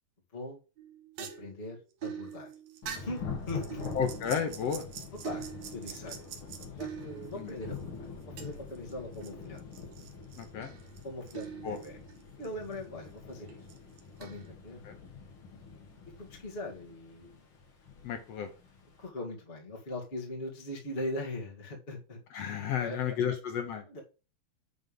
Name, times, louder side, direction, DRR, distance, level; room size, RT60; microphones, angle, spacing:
sound 1, 0.8-7.8 8.4-9.3 9.6-12.5 12.7-12.8 13.5-14.5, right 9 dB, 65° right, 2.1 m, -44 dB
voice 1, 1.2-2.5 3.0-3.2 3.5-3.8 5.2-5.5 5.7-6.2 6.7-9.6 11.0-12.0 12.4-13.6 14.2-14.8 16.2-17.4 19.0-22.2 22.8-23.1 23.8-24.0, left 1 dB, 20° left, -3 dB, 1.6 m, -40 dB
Thunder / Rain, 2.8-19.1, left 5 dB, 45° left, 2.1 m, -45 dB
voice 2, 3.9-4.8 7.4-7.5 10.4-10.7 11.6-11.8 14.8-15.0 18.0-18.5 22.3-23.8, left 7 dB, 70° left, 5 dB, 1.6 m, -32 dB
9.5 x 3.5 x 5.3 m, 0.33 s
omnidirectional pair, 3.9 m